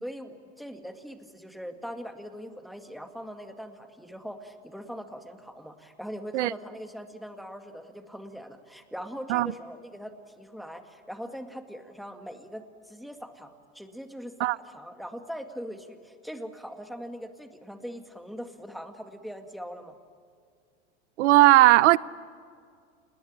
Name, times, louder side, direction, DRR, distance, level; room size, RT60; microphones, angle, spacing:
voice 1, 0.0-20.0, equal, ahead, 2.0 m, -41 dB
voice 2, 21.2-22.0, right 17 dB, 80° right, 0.7 m, -18 dB
29.0 x 20.0 x 8.9 m
hypercardioid pair, 105°, 35 cm